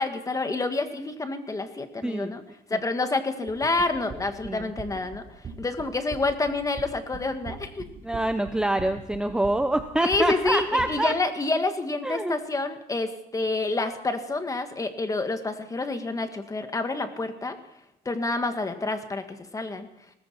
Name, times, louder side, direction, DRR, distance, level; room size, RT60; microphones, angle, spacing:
voice 1, 0.0-2.4 2.7-5.2 5.6-7.8 10.0-17.6 18.0-19.9, left 3 dB, 20° left, 8 dB, 1.6 m, -28 dB
voice 2, 2.0-2.4 2.7-2.8 4.4-4.7 8.0-11.1 12.0-12.4, right 1 dB, 5° right, 8 dB, 0.7 m, -26 dB
sound 1, 3.5-10.9, right 5 dB, 35° right, 3.7 m, -41 dB
19.5 x 14.5 x 4.5 m, 0.82 s
cardioid pair, 110°, 17 cm